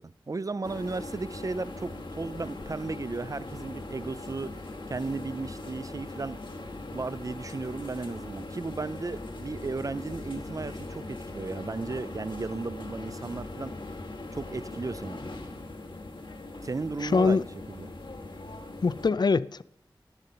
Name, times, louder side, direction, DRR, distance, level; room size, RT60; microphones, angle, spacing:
voice 1, 0.0-4.6 4.9-6.4 6.9-11.1 11.3-13.7 14.3-15.2 16.6-17.9, right 3 dB, 40° right, 0.4 m, -35 dB
sound 1, 0.6-19.1, left 2 dB, 75° left, 1.3 m, -40 dB
voice 2, 17.0-17.4 18.8-19.6, left 4 dB, 55° left, 0.3 m, -23 dB
10.5 x 9.0 x 6.6 m
wide cardioid pair, 55°, 9 cm